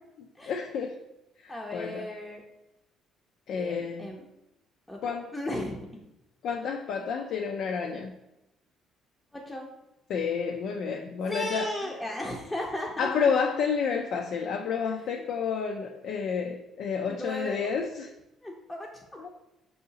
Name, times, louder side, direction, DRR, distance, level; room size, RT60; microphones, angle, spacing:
voice 1, 0.5-1.0 1.4-2.1 3.5-4.1 5.0-5.3 6.4-8.1 10.1-11.7 13.0-18.1 19.2-19.3, left 6 dB, 70° left, 4 dB, 0.3 m, -30 dB
voice 2, 1.5-2.4 3.5-4.2 4.9-5.0 5.3-5.9 9.3-9.7 11.3-13.1 14.8-15.3 17.1-17.6 18.4-18.9, left 1 dB, 10° left, -2 dB, 0.5 m, -35 dB
5.4 x 2.8 x 2.7 m, 0.90 s
cardioid pair, 115°, 0 cm